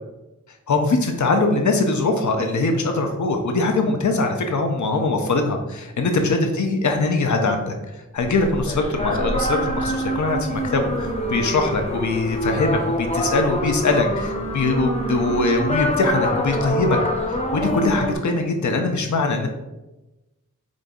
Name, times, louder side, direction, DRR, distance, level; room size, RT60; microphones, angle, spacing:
voice 1, 0.7-7.8 8.1-17.0 17.5-19.5, left 3 dB, 65° left, 4 dB, 0.5 m, -22 dB
sound 1, 8.2-18.2, left 1 dB, 20° left, 0.6 m, -25 dB
5.1 x 2.5 x 2.3 m, 1.0 s
wide cardioid pair, 65°, 31 cm